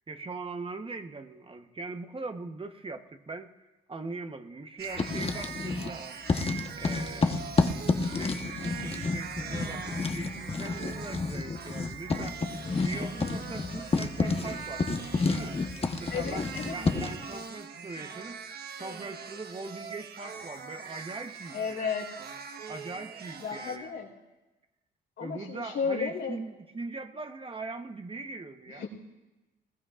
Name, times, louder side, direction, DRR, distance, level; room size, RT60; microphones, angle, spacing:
voice 1, 0.1-3.5 3.9-6.1 6.7-14.9 15.3-15.6 16.0-18.5 18.8-21.9 22.7-24.0 25.2-28.9, right 3 dB, 25° right, 7 dB, 1.0 m, -41 dB
Writing, 4.8-6.0 6.3-17.2, left 3 dB, 30° left, 1.1 m, -30 dB
sound 1, 4.8-23.8, right 6 dB, 55° right, 1.3 m, -42 dB
sound 2, 12.6-17.0, left 5 dB, 55° left, 3.3 m, -52 dB
voice 2, 16.1-16.7 21.5-22.1 23.4-24.1 25.2-26.4 28.7-28.9, left 6 dB, 75° left, 0 dB, 4.2 m, -33 dB
20.5 x 19.5 x 2.5 m, 1.1 s
cardioid pair, 90°, 20 cm